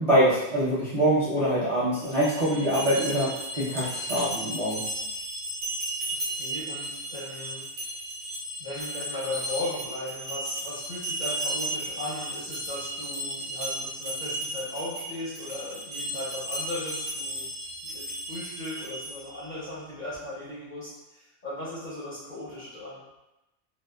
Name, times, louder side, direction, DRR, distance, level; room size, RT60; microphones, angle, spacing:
voice 1, 0.0-4.9, equal, 40° right, -11 dB, 0.5 m, -24 dB
sound 1, 2.0-19.4, right 1 dB, 80° right, 1.0 m, -34 dB
voice 2, 6.3-7.7 8.6-17.5 17.8-23.0, left 1 dB, 50° left, -9 dB, 0.6 m, -37 dB
2.7 x 2.1 x 2.2 m, 0.94 s
omnidirectional pair, 1.4 m